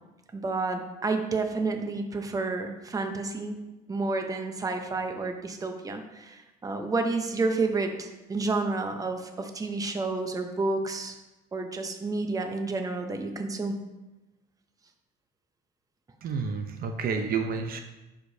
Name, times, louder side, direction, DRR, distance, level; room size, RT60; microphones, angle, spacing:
voice 1, 0.3-11.2 11.5-13.8, right 3 dB, 20° right, 5 dB, 0.8 m, -30 dB
voice 2, 16.2-17.8, right 5 dB, 60° right, 5 dB, 0.7 m, -30 dB
11.0 x 5.0 x 2.7 m, 1.0 s
cardioid pair, 110°, 17 cm